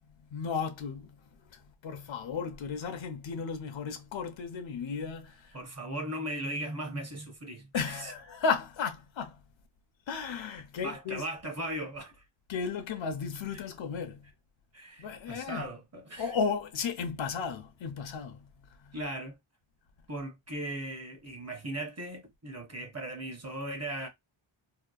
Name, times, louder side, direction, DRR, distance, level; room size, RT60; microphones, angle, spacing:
voice 1, 0.3-1.2 1.5-5.6 7.7-9.4 10.1-11.2 12.5-14.3 15.0-15.7 16.2-18.5 18.8-19.0, left 5 dB, 65° left, 0.7 m, -34 dB
voice 2, 5.5-8.1 10.8-12.2 13.5-13.6 14.7-16.3 18.9-19.4 20.1-24.1, right 1 dB, 30° right, 0.9 m, -38 dB
2.8 x 2.1 x 2.3 m
wide cardioid pair, 95°, 50 cm